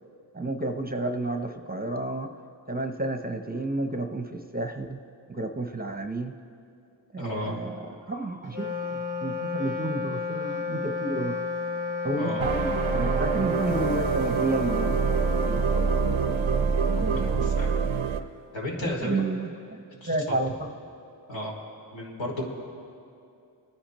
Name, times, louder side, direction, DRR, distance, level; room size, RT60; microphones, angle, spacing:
voice 1, 0.3-2.3 2.7-5.0 5.3-6.3 7.1-7.8 8.1-11.4 12.0-15.0 15.5-15.9 16.3-16.4 17.0-17.4 18.8-20.5, right 2 dB, 20° right, 6 dB, 0.8 m, -31 dB
voice 2, 7.2-7.6 12.2-12.5 17.0-18.0 18.5-19.2 20.0-20.3 21.3-21.6 21.9-22.4, left 1 dB, 70° left, -3 dB, 2.8 m, -34 dB
Wind instrument woodwind instrument, 8.4-18.0, left 5 dB, 40° left, 1.8 m, -33 dB
sound 1, 12.4-18.2, right 6 dB, 90° right, 0.7 m, -25 dB
27.5 x 10.0 x 3.1 m, 2.6 s
cardioid pair, 40°, 47 cm